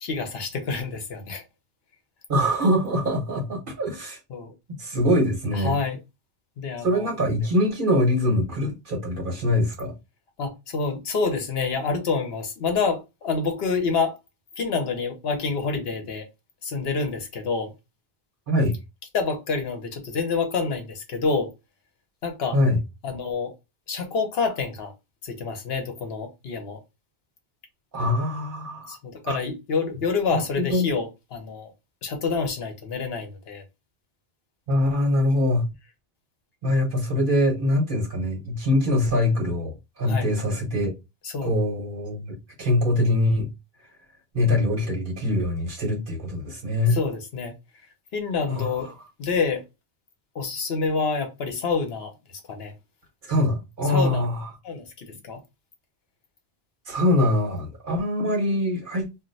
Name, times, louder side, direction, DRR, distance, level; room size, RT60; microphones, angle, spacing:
voice 1, 0.0-1.4 4.3-4.5 5.6-6.0 6.6-7.1 10.4-14.2 14.6-16.3 16.6-17.7 19.1-21.5 22.2-22.6 23.0-23.5 23.9-24.9 25.2-26.8 28.9-31.7 32.0-33.6 40.1-40.3 41.2-41.6 46.9-47.5 48.1-48.9 49.2-49.6 50.3-52.1 52.5-52.7 53.8-54.2 54.6-55.4, left 4 dB, 70° left, 1.0 m, -27 dB
voice 2, 2.3-4.2 4.8-5.8 6.8-9.9 18.5-18.8 22.5-22.8 27.9-29.0 29.2-29.4 30.3-30.8 34.7-35.6 36.6-40.9 41.4-43.5 44.3-47.0 48.5-48.7 53.2-54.5 56.9-59.1, left 1 dB, 50° right, 1.2 m, -23 dB
2.5 x 2.2 x 3.8 m
omnidirectional pair, 1.1 m